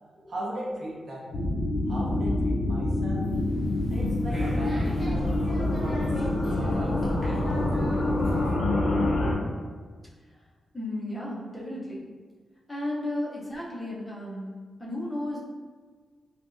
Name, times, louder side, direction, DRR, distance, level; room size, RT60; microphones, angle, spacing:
voice 1, 0.3-1.3 1.9-3.3 3.9-7.8, right 1 dB, 45° right, -4 dB, 0.6 m, -38 dB
sound 1, 1.3-9.3, left 2 dB, 60° left, 0.6 m, -26 dB
sound 2, 3.1-8.6, equal, 15° right, 0.9 m, -39 dB
voice 2, 10.7-12.1 12.7-14.5 14.8-15.4, left 1 dB, 10° left, -6 dB, 0.6 m, -34 dB
3.4 x 2.8 x 2.5 m, 1.5 s
wide cardioid pair, 160°, 0 cm